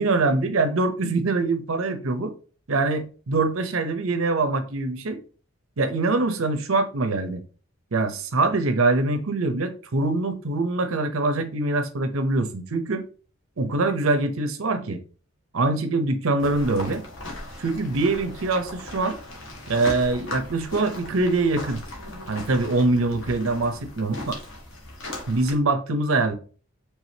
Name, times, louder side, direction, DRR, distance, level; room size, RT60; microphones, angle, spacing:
voice 1, 0.0-2.3 2.7-5.2 5.8-7.4 7.9-13.0 13.6-15.0 15.5-17.0 17.6-19.2 19.7-21.8 22.3-24.3 25.3-26.3, right 3 dB, 80° right, 8 dB, 0.7 m, -24 dB
sound 1, 16.4-25.6, left 1 dB, 65° left, 1.4 m, -38 dB
4.7 x 3.4 x 2.8 m, 0.38 s
head